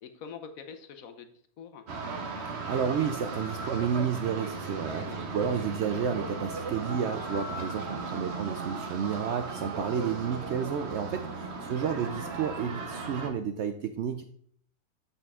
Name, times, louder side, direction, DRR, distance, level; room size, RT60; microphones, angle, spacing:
voice 1, 0.0-1.3 1.6-1.8 5.0-5.2 8.2-8.3 11.4-11.6, left 6 dB, 60° left, 8 dB, 1.2 m, -45 dB
sound 1, 1.9-13.3, right 4 dB, 50° right, 1.1 m, -36 dB
voice 2, 2.5-14.2, right 7 dB, 80° right, 8 dB, 0.6 m, -31 dB
8.2 x 5.5 x 3.6 m, 0.62 s
omnidirectional pair, 1.7 m